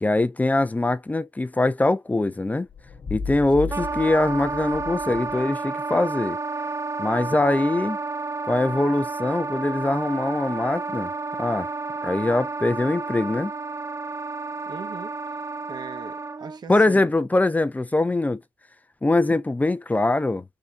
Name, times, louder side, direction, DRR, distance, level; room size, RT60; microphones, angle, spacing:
voice 1, 0.0-2.7 3.1-6.4 7.0-8.0 8.4-11.1 11.4-11.7 12.0-13.5 16.7-18.4 19.0-20.4, left 2 dB, 15° left, 0.5 m, -22 dB
sound 1, 2.7-5.5, left 4 dB, 45° left, 1.0 m, -35 dB
Wind instrument woodwind instrument, 3.7-16.6, right 3 dB, 35° right, 0.4 m, -31 dB
voice 2, 14.7-17.1, right 5 dB, 55° right, 1.0 m, -40 dB
3.8 x 3.3 x 2.4 m
supercardioid pair, 55°, 9 cm